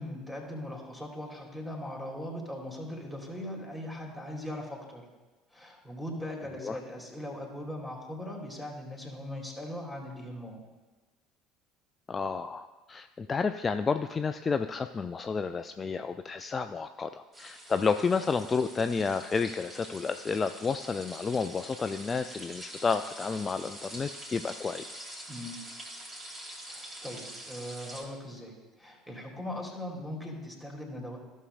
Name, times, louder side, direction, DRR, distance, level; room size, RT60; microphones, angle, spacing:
voice 1, 0.0-5.0 5.5-10.6 25.3-25.6 26.7-31.2, left 1 dB, 5° right, 0 dB, 2.4 m, -40 dB
voice 2, 12.1-25.1, left 5 dB, 25° left, 9 dB, 0.3 m, -31 dB
sound 1, 17.3-28.0, right 1 dB, 25° right, 2.5 m, -45 dB
15.0 x 6.4 x 2.4 m, 1.2 s
figure-of-eight pair, 60°, 0 cm